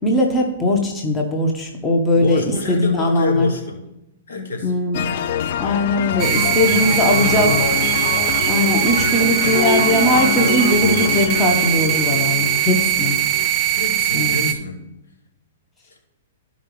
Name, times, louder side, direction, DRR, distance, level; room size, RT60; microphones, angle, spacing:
voice 1, 0.0-2.4 2.7-3.5 4.6-5.0 5.6-7.5 8.5-13.1 14.1-14.5, left 1 dB, 15° left, 0 dB, 1.6 m, -19 dB
voice 2, 2.1-3.8 4.3-4.7 6.7-8.0 13.7-14.8 15.9-16.0, left 3 dB, 75° left, 2 dB, 2.2 m, -28 dB
sound 1, 4.9-13.5, left 8 dB, 60° left, 0.5 m, -25 dB
sound 2, 6.2-14.5, right 13 dB, 30° right, 0.7 m, -20 dB
13.5 x 5.2 x 3.4 m, 0.91 s
hypercardioid pair, 125°, 0 cm